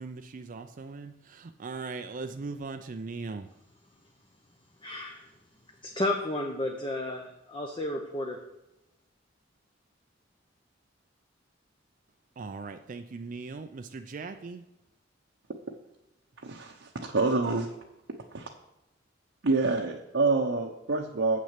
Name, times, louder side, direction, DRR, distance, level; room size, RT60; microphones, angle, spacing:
voice 1, 0.0-3.5 12.4-14.6, right 4 dB, 45° right, 8 dB, 0.4 m, -39 dB
voice 2, 4.8-5.2 6.0-8.4, left 1 dB, 25° left, 1 dB, 0.8 m, -32 dB
voice 3, 16.4-17.7 18.3-18.5 19.4-21.4, right 3 dB, 70° right, 0 dB, 0.8 m, -27 dB
7.7 x 6.2 x 5.8 m, 0.95 s
head